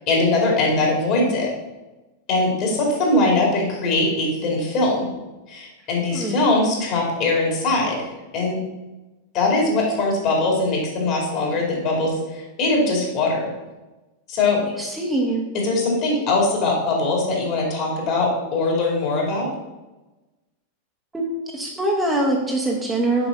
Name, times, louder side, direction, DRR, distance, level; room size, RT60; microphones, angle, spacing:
voice 1, 0.1-1.5 2.3-5.1 5.5-8.1 8.3-8.6 9.3-13.5 14.3-14.6 15.6-19.5, left 2 dB, 40° left, -1 dB, 2.6 m, -21 dB
voice 2, 6.1-6.5 14.8-15.5 21.1-23.3, right 1 dB, 10° right, -1 dB, 1.0 m, -23 dB
7.0 x 5.3 x 4.1 m, 1.1 s
figure-of-eight pair, 90°, 0 cm